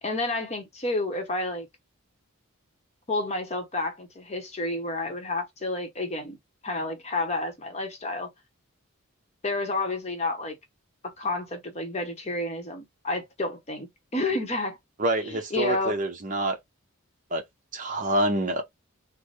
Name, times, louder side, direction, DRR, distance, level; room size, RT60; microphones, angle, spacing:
voice 1, 0.0-1.7 3.1-6.4 6.6-8.3 9.4-10.6 11.0-13.9 14.1-14.8 15.3-16.0, left 2 dB, 30° left, 0.9 m, -30 dB
voice 2, 15.0-16.6 17.3-17.4 17.7-18.6, right 1 dB, 35° right, 0.8 m, -26 dB
4.0 x 2.1 x 3.2 m
head